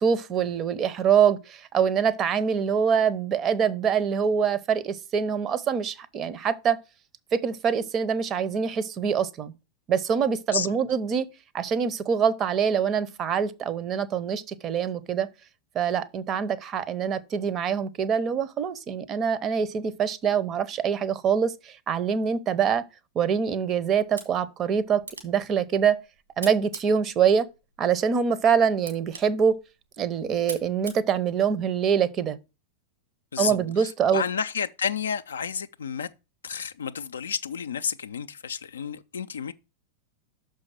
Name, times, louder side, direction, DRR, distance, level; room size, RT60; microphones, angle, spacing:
voice 1, 0.0-6.8 7.3-9.5 9.9-11.3 11.5-15.3 15.7-22.8 23.1-26.0 26.4-27.5 27.8-29.5 30.0-32.4 33.4-34.2, right 7 dB, 30° right, 0.7 m, -24 dB
sound 1, 24.0-32.0, right 4 dB, 80° right, 2.1 m, -45 dB
voice 2, 33.3-36.1 36.4-39.5, left 7 dB, 70° left, 0.4 m, -31 dB
6.3 x 4.8 x 5.9 m
figure-of-eight pair, 90°, 0 cm